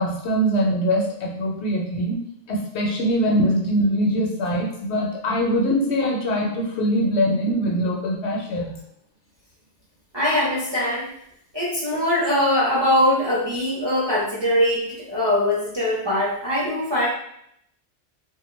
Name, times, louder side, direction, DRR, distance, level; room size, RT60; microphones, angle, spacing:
voice 1, 0.0-2.2 2.5-8.8, equal, 70° left, -1 dB, 0.8 m, -22 dB
voice 2, 10.1-11.1 11.5-17.1, left 1 dB, 35° right, -7 dB, 0.4 m, -22 dB
2.2 x 2.2 x 3.0 m, 0.73 s
omnidirectional pair, 1.2 m